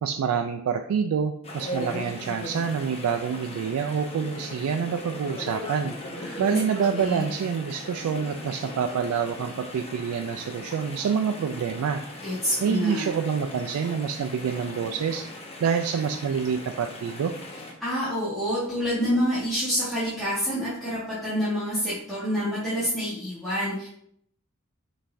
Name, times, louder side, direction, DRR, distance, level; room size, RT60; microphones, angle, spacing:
voice 1, 0.0-5.9 6.4-12.0 12.6-15.2 15.6-17.3, right 6 dB, 85° right, 5 dB, 0.3 m, -27 dB
Chatter / Stream, 1.4-17.7, left 1 dB, 30° left, 0.7 m, -39 dB
voice 2, 6.2-6.6 6.9-7.3 12.2-13.1 17.8-23.9, equal, ahead, -12 dB, 1.2 m, -27 dB
5.5 x 3.2 x 2.5 m, 0.69 s
head